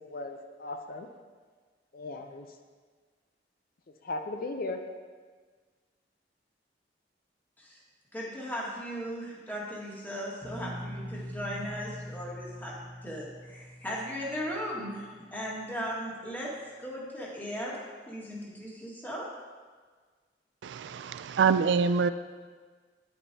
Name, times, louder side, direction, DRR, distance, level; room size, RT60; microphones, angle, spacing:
voice 1, 0.1-1.1 1.9-2.5 4.0-4.8, left 2 dB, 55° left, 6 dB, 0.5 m, -36 dB
voice 2, 8.1-12.7 13.0-15.0 15.3-16.5 16.8-19.3, equal, 10° left, -5 dB, 1.7 m, -37 dB
sound 1, 10.4-15.3, equal, 10° right, 1.3 m, -43 dB
voice 3, 20.6-22.1, right 6 dB, 80° right, 12 dB, 0.3 m, -25 dB
9.5 x 8.8 x 2.7 m, 1.5 s
head